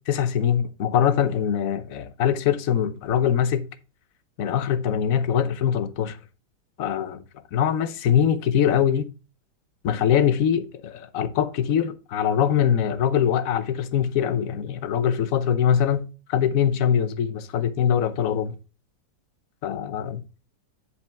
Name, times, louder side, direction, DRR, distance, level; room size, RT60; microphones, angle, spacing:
voice 1, 0.1-3.7 4.4-6.2 6.8-7.2 7.5-9.1 9.8-18.5 19.6-20.2, left 9 dB, 60° left, 1.1 m, -23 dB
9.8 x 5.3 x 3.4 m
omnidirectional pair, 1.9 m